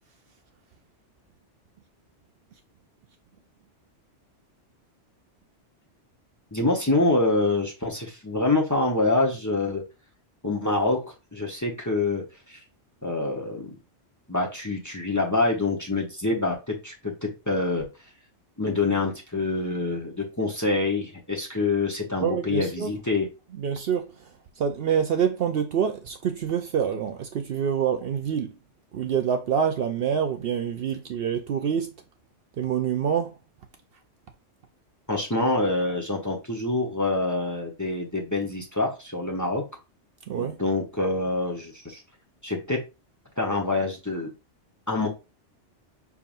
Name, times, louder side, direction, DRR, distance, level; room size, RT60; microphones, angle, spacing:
voice 1, 6.5-9.8 10.4-12.6 13.0-13.7 14.3-17.9 18.6-23.3 35.1-39.7 40.4-42.0 42.4-42.8 43.4-44.3 44.9-45.1, left 2 dB, 15° left, 0.9 m, -26 dB
voice 2, 22.2-22.9 23.6-24.1 24.6-28.5 28.9-31.9 32.6-33.3 40.3-40.6, right 8 dB, 65° right, 0.7 m, -26 dB
5.8 x 3.5 x 2.5 m
omnidirectional pair, 1.2 m